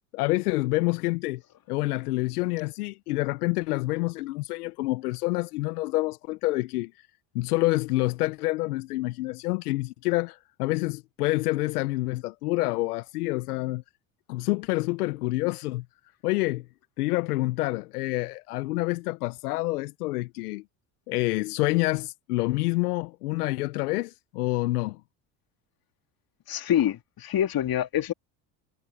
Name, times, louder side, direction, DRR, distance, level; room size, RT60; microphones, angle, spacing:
voice 1, 0.1-1.4 1.7-7.1 7.3-13.8 14.3-15.8 16.2-16.6 17.0-20.6 21.1-25.0, left 20 dB, 85° left, 1.0 m, -27 dB
voice 2, 26.5-28.1, left 11 dB, 50° left, 3.0 m, -26 dB
hypercardioid pair, 70°, 45 cm